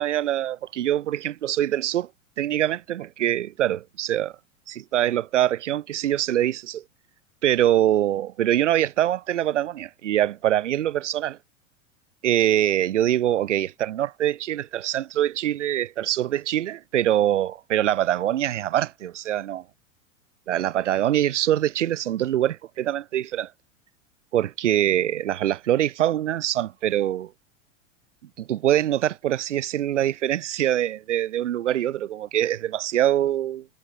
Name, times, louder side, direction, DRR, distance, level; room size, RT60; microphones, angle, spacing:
voice 1, 0.0-2.1 2.4-4.3 4.7-6.8 7.4-11.4 12.2-19.6 20.5-23.5 24.3-27.3 28.4-33.7, right 12 dB, 70° right, 1.3 m, -24 dB
figure-of-eight pair, 90°, 38 cm